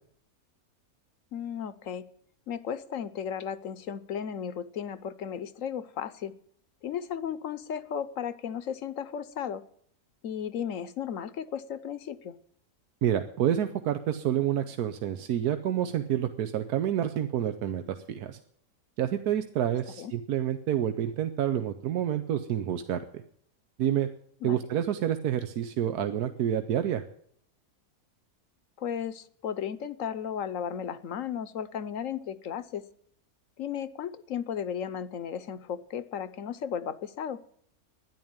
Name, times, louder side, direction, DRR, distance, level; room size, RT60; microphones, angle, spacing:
voice 1, 1.3-2.0 2.5-6.3 6.8-9.6 10.2-12.4 20.0-20.1 24.4-24.6 28.8-32.8 33.6-37.4, left 8 dB, 65° left, 15 dB, 1.1 m, -35 dB
voice 2, 13.0-18.4 19.0-23.2 23.8-24.1 24.4-27.0, right 10 dB, 85° right, 9 dB, 1.4 m, -28 dB
12.5 x 10.5 x 8.8 m, 0.64 s
omnidirectional pair, 1.6 m